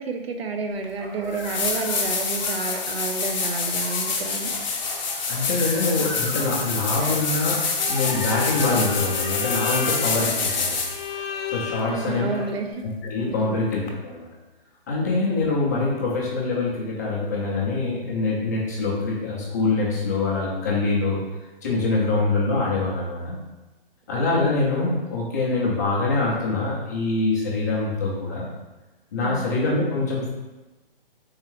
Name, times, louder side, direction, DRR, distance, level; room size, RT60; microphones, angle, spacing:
voice 1, 0.0-4.5 11.9-12.8 13.3-13.6 24.1-24.5 29.2-29.5, right 4 dB, 85° right, 4 dB, 0.7 m, -30 dB
sound 1, 0.8-0.9 1.3-11.1 13.9-14.0, left 4 dB, 50° left, 0.8 m, -27 dB
sound 2, 1.0-12.6, equal, 10° right, 0.9 m, -38 dB
voice 2, 5.3-10.8 11.5-12.5 12.8-14.3 14.9-21.2 21.6-23.3 24.1-28.5 29.1-30.3, left 3 dB, 20° left, -5 dB, 0.5 m, -24 dB
Bowed string instrument, 7.8-12.5, left 8 dB, 75° left, 0.5 m, -33 dB
3.6 x 3.2 x 3.1 m, 1.1 s
hypercardioid pair, 155°, 30 cm